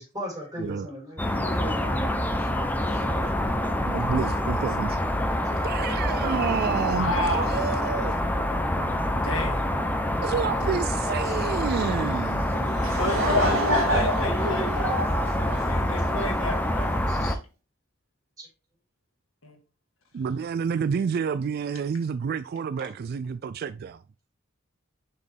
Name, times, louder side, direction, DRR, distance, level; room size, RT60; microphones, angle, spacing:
voice 1, 0.0-2.0 3.1-3.7 11.3-11.4 17.1-17.3 18.4-18.5, equal, 20° right, 4.0 m, -38 dB
sound 1, 1.2-17.4, left 1 dB, 10° left, 0.6 m, -26 dB
voice 2, 3.9-5.0 5.6-8.2 10.2-12.8 20.1-24.0, right 6 dB, 50° right, 0.3 m, -29 dB
voice 3, 6.9-7.7 9.1-9.7 12.8-17.4 19.4-19.6 22.8-23.0, left 3 dB, 80° left, 1.5 m, -34 dB
Laughter / Crowd, 12.5-16.3, equal, 75° right, 2.6 m, -27 dB
6.4 x 5.2 x 3.4 m
head